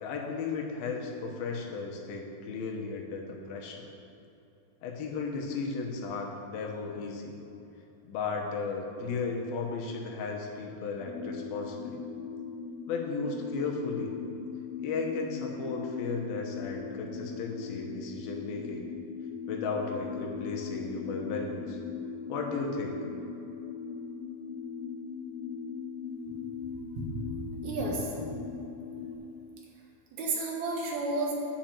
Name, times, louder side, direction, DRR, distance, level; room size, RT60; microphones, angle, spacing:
voice 1, 0.0-3.9 4.8-7.4 8.0-12.0 12.9-14.2 14.8-18.9 19.5-21.8 22.3-23.0, left 4 dB, 90° left, 0 dB, 3.0 m, -35 dB
sound 1, 11.0-29.2, left 6 dB, 70° left, 2.1 m, -39 dB
voice 2, 27.0-28.3 30.2-31.3, right 2 dB, 90° right, -2 dB, 3.4 m, -32 dB
10.5 x 5.3 x 7.5 m, 2.9 s
omnidirectional pair, 4.2 m